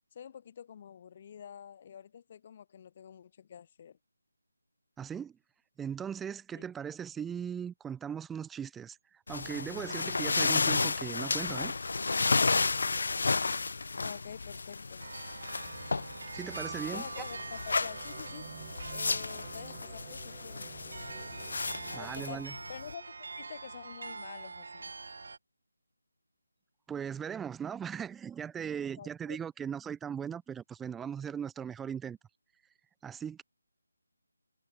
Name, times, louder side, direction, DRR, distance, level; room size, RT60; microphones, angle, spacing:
voice 1, 0.1-4.0 6.5-6.6 14.0-15.1 16.9-18.5 18.9-20.7 21.9-24.9 29.0-29.4, left 8 dB, 35° left, 2.1 m, -47 dB
voice 2, 5.0-5.4 5.8-11.7 16.3-17.0 21.9-22.5 26.9-32.2 33.0-33.4, right 8 dB, 5° right, 0.5 m, -38 dB
sound 1, 9.3-22.9, left 4 dB, 60° left, 0.3 m, -33 dB
sound 2, 15.0-25.4, right 4 dB, 60° right, 0.8 m, -45 dB
sound 3, 15.5-22.4, right 14 dB, 20° right, 1.7 m, -53 dB
figure-of-eight pair, 165°, 0 cm